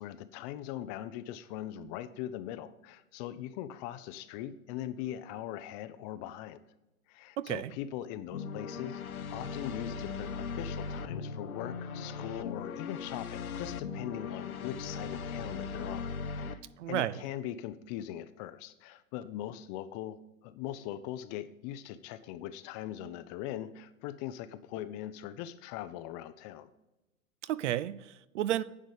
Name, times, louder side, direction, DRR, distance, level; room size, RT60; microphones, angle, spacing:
voice 1, 0.0-6.6 7.1-9.0 9.3-16.6 16.9-26.7, left 12 dB, 30° left, 13 dB, 0.5 m, -41 dB
voice 2, 7.4-7.7 16.8-17.2 27.4-28.6, right 12 dB, 60° right, 17 dB, 0.6 m, -32 dB
sound 1, 8.3-16.6, left 5 dB, 80° left, 0.8 m, -38 dB
9.9 x 5.2 x 6.7 m, 0.97 s
figure-of-eight pair, 100°, 42 cm